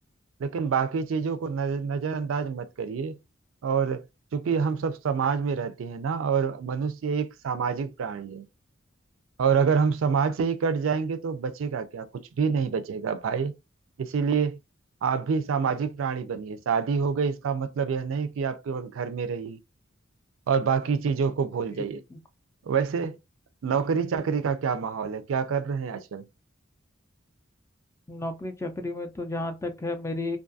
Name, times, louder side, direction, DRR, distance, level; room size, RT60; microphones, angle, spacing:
voice 1, 0.4-3.2 3.6-4.0 4.3-8.4 9.4-13.5 14.0-14.6 15.0-19.6 20.5-22.0 22.7-23.2 23.6-26.2, right 6 dB, 85° right, 0.4 m, -27 dB
voice 2, 21.7-22.2 28.1-30.4, left 2 dB, 15° left, 0.3 m, -33 dB
2.5 x 2.3 x 2.5 m
head